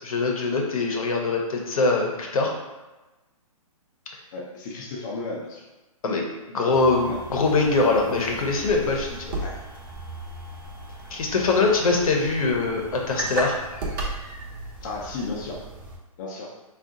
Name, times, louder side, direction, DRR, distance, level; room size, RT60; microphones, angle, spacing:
voice 1, 0.0-2.5 6.0-9.1 11.1-13.6, left 3 dB, 70° left, 1 dB, 0.7 m, -23 dB
voice 2, 4.3-5.6 6.8-7.2 9.4-9.6 14.8-15.6 16.2-16.5, left 3 dB, 30° left, -3 dB, 0.5 m, -34 dB
sound 1, 6.7-16.0, right 2 dB, 35° right, 0.7 m, -36 dB
2.7 x 2.3 x 3.6 m, 1.1 s
hypercardioid pair, 160°, 19 cm